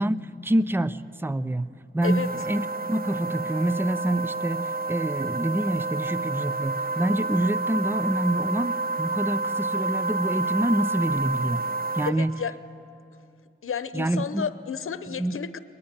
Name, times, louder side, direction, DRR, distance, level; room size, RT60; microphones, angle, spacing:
voice 1, 0.0-11.7 11.9-12.4 13.9-14.5 15.1-15.4, right 1 dB, 10° right, 15 dB, 0.6 m, -27 dB
sound 1, 2.0-12.1, right 3 dB, 45° right, 1.1 m, -29 dB
voice 2, 12.1-12.5 13.6-15.6, left 7 dB, 90° left, 13 dB, 0.9 m, -31 dB
22.0 x 20.5 x 9.7 m, 2.5 s
wide cardioid pair, 90°, 21 cm